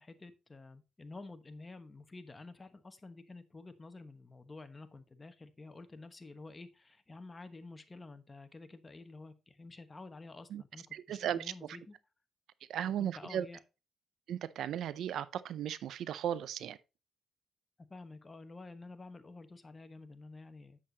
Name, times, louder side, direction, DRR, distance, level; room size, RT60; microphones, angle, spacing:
voice 1, 0.0-12.0 13.0-13.6 17.9-20.8, left 3 dB, 25° left, 1.2 m, -50 dB
voice 2, 10.9-11.5 12.7-13.5 14.3-16.8, right 10 dB, 75° right, 0.5 m, -36 dB
8.3 x 7.6 x 2.8 m
cardioid pair, 90°, 0 cm